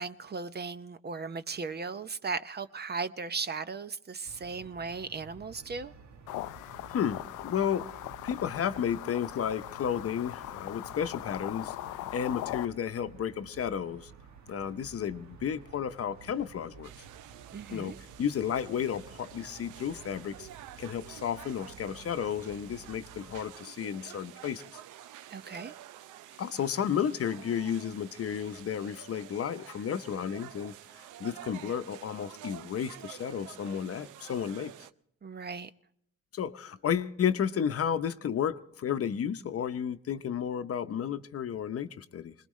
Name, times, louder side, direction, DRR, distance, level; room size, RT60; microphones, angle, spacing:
voice 1, 0.0-5.9 17.5-18.0 25.3-25.8 35.2-35.7, right 4 dB, 35° right, 0.7 m, -37 dB
sound 1, 4.2-23.5, right 5 dB, 65° right, 1.4 m, -53 dB
sound 2, 6.3-12.7, left 14 dB, 90° left, 0.5 m, -40 dB
voice 2, 6.9-7.9 8.2-11.7 12.1-14.1 14.5-16.9 17.7-20.5 20.8-24.7 26.4-30.7 31.2-34.7 36.3-42.3, left 8 dB, 50° left, 0.8 m, -32 dB
sound 3, 16.8-34.9, right 12 dB, 85° right, 0.6 m, -49 dB
22.0 x 20.5 x 3.2 m
cardioid pair, 90°, 30 cm